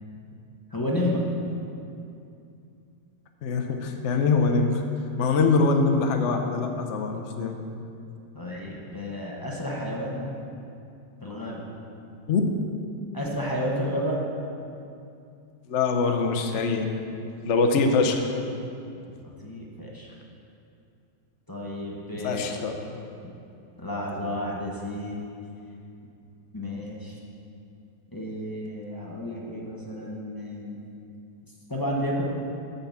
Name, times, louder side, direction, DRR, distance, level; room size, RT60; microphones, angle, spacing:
voice 1, 0.7-1.2 8.3-10.3 11.2-11.6 13.1-14.2 19.4-20.1 21.5-22.7 23.8-25.2 26.5-27.2 28.1-30.8 31.7-32.2, left 1 dB, 20° left, -4 dB, 0.5 m, -31 dB
voice 2, 3.4-4.8 5.2-7.6 12.3-12.4 15.7-16.9 17.4-18.2 22.2-22.7, left 4 dB, 60° left, 4 dB, 0.7 m, -23 dB
9.2 x 5.6 x 7.1 m, 2.7 s
omnidirectional pair, 2.1 m